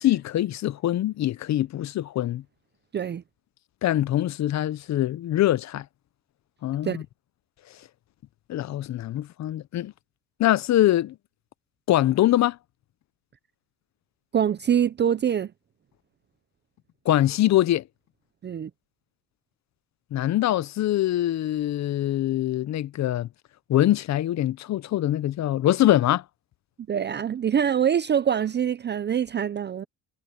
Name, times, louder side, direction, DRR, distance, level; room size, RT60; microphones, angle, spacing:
voice 1, 0.0-2.4 3.8-5.9 6.6-7.0 8.5-9.9 10.4-11.2 11.9-12.6 17.0-17.9 20.1-23.3 23.7-26.2, left 13 dB, 65° left, 0.7 m, -23 dB
voice 2, 14.3-15.5 18.4-18.7 26.9-29.8, right 8 dB, 35° right, 0.6 m, -24 dB
cardioid pair, 90°, 30 cm